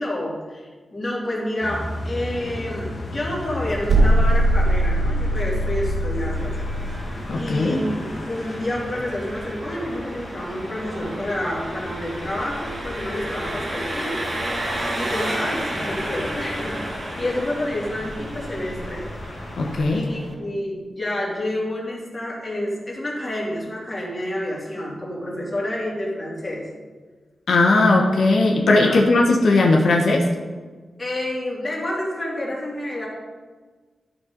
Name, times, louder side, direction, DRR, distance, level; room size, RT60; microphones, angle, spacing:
voice 1, 0.0-6.6 7.3-8.0 8.3-14.2 14.6-16.8 17.1-19.1 19.9-26.7 28.8-29.0 31.0-33.1, left 1 dB, 30° left, -5 dB, 2.8 m, -29 dB
sound 1, 1.6-19.9, left 1 dB, 55° left, 1.4 m, -35 dB
sound 2, 3.9-7.0, right 1 dB, 65° right, 1.9 m, -20 dB
Engine, 6.3-20.3, right 1 dB, 40° right, 1.8 m, -33 dB
voice 2, 7.3-7.8 19.6-20.0 27.5-30.3, left 2 dB, 85° left, 0 dB, 1.2 m, -18 dB
12.5 x 4.2 x 5.3 m, 1.4 s
wide cardioid pair, 120°, 0 cm